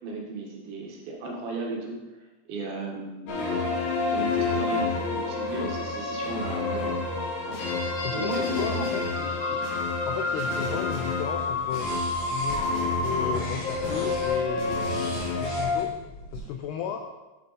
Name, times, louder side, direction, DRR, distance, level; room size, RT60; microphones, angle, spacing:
voice 1, 0.0-2.0 2.5-3.3 4.1-6.9 7.5-7.6 8.1-8.9, right 3 dB, 75° right, -1 dB, 3.7 m, -35 dB
sound 1, 3.3-15.8, left 3 dB, 70° left, 1.6 m, -28 dB
voice 2, 8.0-9.6 10.1-11.9 12.3-15.9 16.3-17.0, left 8 dB, 85° left, 4 dB, 2.3 m, -34 dB
sound 2, 11.4-16.4, left 1 dB, 50° left, 4.1 m, -41 dB
8.1 x 6.9 x 4.1 m, 1.1 s
omnidirectional pair, 5.2 m